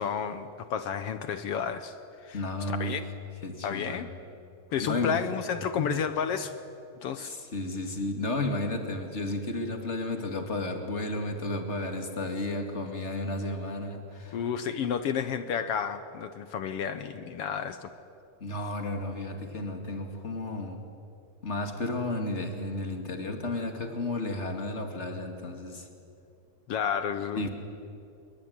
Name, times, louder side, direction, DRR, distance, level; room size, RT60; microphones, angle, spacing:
voice 1, 0.0-2.0 2.2-2.4 2.7-3.1 3.6-4.1 4.7-6.6 7.0-7.3 14.3-17.9 26.7-27.5, left 7 dB, 65° left, 11 dB, 1.6 m, -31 dB
voice 2, 2.3-3.0 3.4-4.1 4.8-5.2 5.8-6.0 7.2-14.4 18.4-20.8 21.4-25.9 27.4-27.5, left 2 dB, 25° left, 5 dB, 2.4 m, -33 dB
27.0 x 22.5 x 9.7 m, 2.6 s
omnidirectional pair, 3.6 m